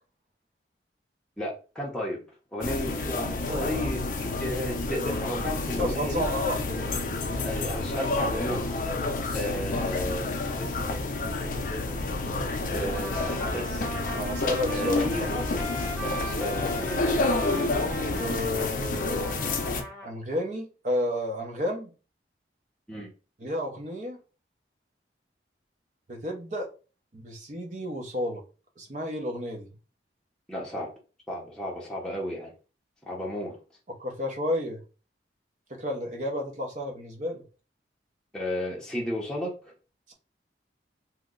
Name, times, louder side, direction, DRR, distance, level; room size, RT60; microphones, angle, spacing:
voice 1, 1.4-2.2 2.5-4.0 4.4-6.2 6.7-6.9 7.4-8.6 9.3-10.8 12.7-13.9 14.7-15.4 16.0-17.3 22.9-23.1 30.5-30.9 31.3-32.5 33.0-33.6 38.3-39.5, equal, 5° left, 0.7 m, -33 dB
sound 1, 2.6-19.8, left 2 dB, 45° left, 0.5 m, -29 dB
voice 2, 3.4-3.9 5.8-6.8 7.3-7.4 9.5-9.6 14.1-15.3 18.2-19.3 20.0-21.9 23.4-24.2 26.1-26.7 27.1-28.4 28.8-29.7 33.9-34.8 35.7-37.4, left 1 dB, 45° right, 0.7 m, -31 dB
Trumpet, 12.9-20.1, equal, 65° right, 1.6 m, -38 dB
2.9 x 2.1 x 3.7 m
head